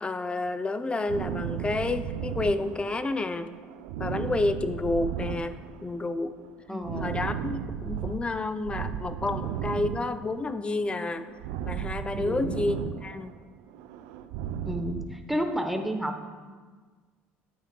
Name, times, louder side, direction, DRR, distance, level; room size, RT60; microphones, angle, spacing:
voice 1, 0.0-3.5 4.0-6.4 6.7-11.3 11.6-13.3, left 2 dB, 20° left, 11 dB, 0.5 m, -30 dB
sound 1, 1.1-3.2 3.5-6.0 6.3-8.2 8.6-10.6 10.8-13.4 13.7-15.1, right 9 dB, 80° right, 0.4 m, -35 dB
voice 2, 6.7-7.2 12.2-12.5 14.7-16.3, equal, 5° right, 5 dB, 0.9 m, -31 dB
9.4 x 8.8 x 2.2 m, 1.5 s
supercardioid pair, 80°, 5 cm